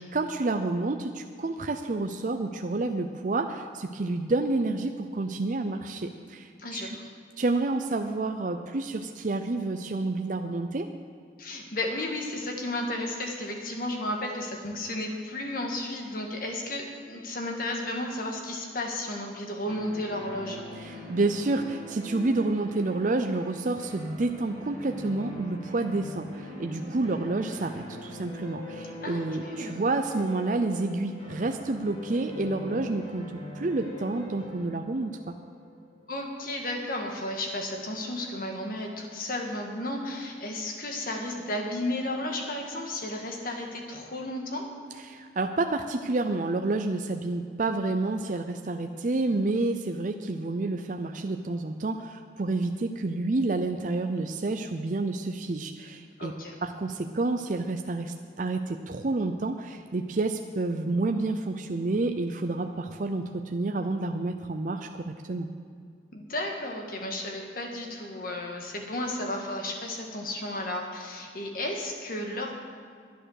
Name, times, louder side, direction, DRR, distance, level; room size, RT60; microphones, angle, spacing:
voice 1, 0.1-6.9 7.4-10.9 20.8-33.2 33.5-35.3 45.1-56.3 56.6-65.5, right 2 dB, 45° right, 5 dB, 0.5 m, -29 dB
voice 2, 6.6-7.1 11.4-20.6 29.0-29.8 36.1-44.7 56.2-56.6 66.1-72.5, left 1 dB, 50° left, 2 dB, 1.7 m, -33 dB
sound 1, 19.7-36.4, equal, 30° left, 2.5 m, -42 dB
11.5 x 10.0 x 6.5 m, 2.2 s
head